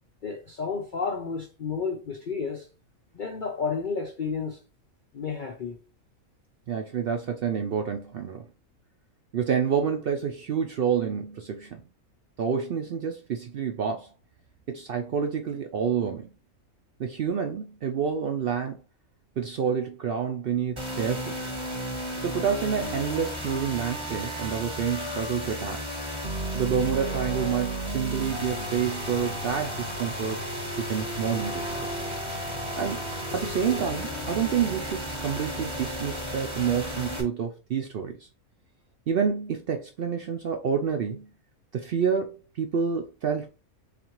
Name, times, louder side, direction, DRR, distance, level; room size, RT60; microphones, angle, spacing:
voice 1, 0.2-2.7 3.1-4.6 5.1-5.8, left 5 dB, 70° left, 0.4 m, -31 dB
voice 2, 6.7-8.5 9.3-11.8 12.4-14.1 14.7-16.3 17.0-18.8 19.4-21.4 22.2-25.8 26.5-30.4 30.8-31.7 32.8-33.1 33.3-38.3 39.1-41.3 41.7-43.5, right 7 dB, 75° right, 0.5 m, -28 dB
sound 1, 20.8-37.2, equal, 25° right, 0.9 m, -33 dB
4.0 x 3.3 x 2.9 m
omnidirectional pair, 1.5 m